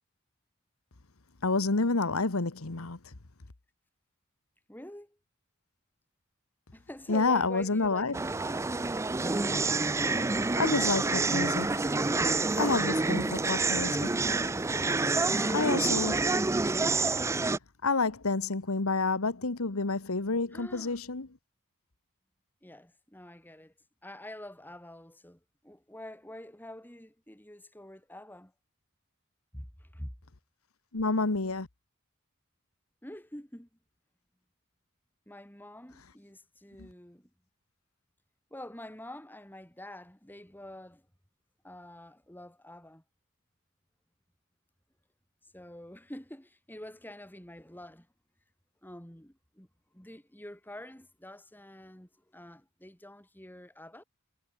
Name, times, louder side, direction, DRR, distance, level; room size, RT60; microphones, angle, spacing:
voice 1, 1.4-3.1 7.1-8.2 10.6-11.8 12.6-14.1 15.5-16.2 17.8-21.3 30.9-31.7 36.8-36.9, left 3 dB, 80° left, 1.4 m, -29 dB
voice 2, 4.7-5.2 6.7-8.5 15.3-16.3 20.5-21.0 22.6-23.7 24.0-28.5 29.5-30.1 33.0-33.7 35.3-37.3 38.5-41.1 41.6-43.0 45.4-48.1 48.8-49.7 49.9-54.0, left 1 dB, 10° left, 3.2 m, -47 dB
sound 1, 8.1-17.6, right 3 dB, 15° right, 0.4 m, -28 dB
head